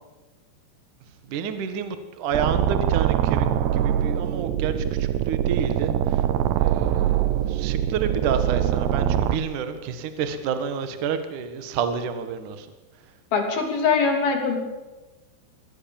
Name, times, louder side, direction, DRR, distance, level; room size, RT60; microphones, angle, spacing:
voice 1, 1.2-3.5 3.7-6.2 6.6-12.7, right 6 dB, 60° right, 9 dB, 2.2 m, -29 dB
sound 1, 2.3-9.4, right 11 dB, 75° right, 2.7 m, -23 dB
voice 2, 13.3-14.6, left 5 dB, 50° left, 3 dB, 4.6 m, -22 dB
24.0 x 18.0 x 7.2 m, 1.2 s
omnidirectional pair, 5.9 m